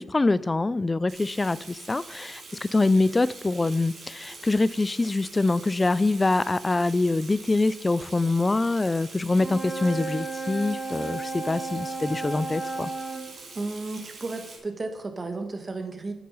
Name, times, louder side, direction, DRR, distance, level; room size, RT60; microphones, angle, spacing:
voice 1, 0.0-12.9, left 2 dB, 25° left, 0.3 m, -24 dB
Water tap faucet / Sink (filling or washing), 1.1-14.6, right 3 dB, 60° right, 2.4 m, -44 dB
Wind instrument woodwind instrument, 9.3-13.3, right 3 dB, ahead, 2.7 m, -33 dB
voice 2, 13.5-16.1, right 3 dB, 35° right, 1.3 m, -33 dB
8.8 x 6.3 x 5.3 m
cardioid pair, 65°, 0 cm